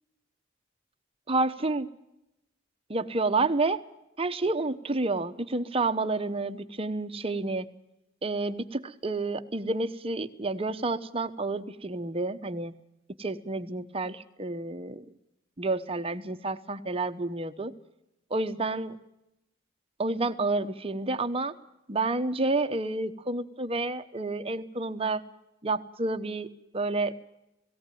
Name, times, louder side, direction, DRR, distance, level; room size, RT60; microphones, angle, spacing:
voice 1, 1.3-1.9 2.9-3.8 4.2-7.7 8.2-12.8 13.2-15.0 15.6-17.7 18.3-19.0 20.0-21.5 21.9-25.2 25.6-27.1, right 3 dB, 30° right, 10 dB, 0.9 m, -29 dB
18.0 x 17.5 x 9.2 m, 0.89 s
head